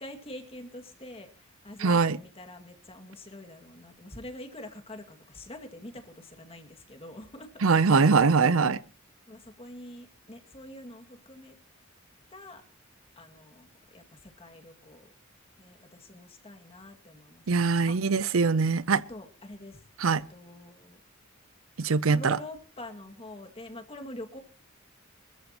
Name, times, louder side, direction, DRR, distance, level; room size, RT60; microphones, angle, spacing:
voice 1, 0.0-8.6 9.3-11.6 12.3-12.6 13.2-15.1 15.6-17.4 17.9-18.3 19.1-19.8 20.1-21.0 22.1-24.4, left 1 dB, 30° left, 2.1 m, -45 dB
voice 2, 1.8-2.2 7.6-8.8 17.5-19.0 20.0-20.2 21.8-22.4, right 4 dB, 70° right, 0.6 m, -22 dB
23.5 x 14.0 x 3.0 m
head